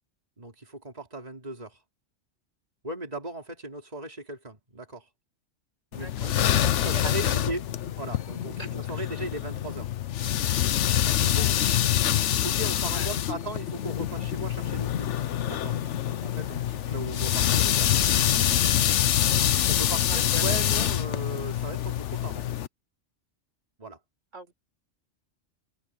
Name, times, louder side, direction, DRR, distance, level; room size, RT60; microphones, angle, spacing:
voice 1, 0.4-1.8 2.8-5.1 5.9-7.6 8.0-9.9 11.2-11.6 12.4-15.2 15.4-15.8 16.1-18.5 19.7-22.5 23.8-24.0, right 2 dB, 30° right, 3.7 m, -38 dB
sound 1, 5.9-22.7, left 11 dB, 70° left, 1.0 m, -25 dB
voice 2, 6.0-7.4 8.6-9.1 11.6-12.0 12.8-13.1 13.4-13.5 20.0-20.6 24.3-24.5, right 1 dB, 75° right, 5.2 m, -42 dB
omnidirectional pair, 1.3 m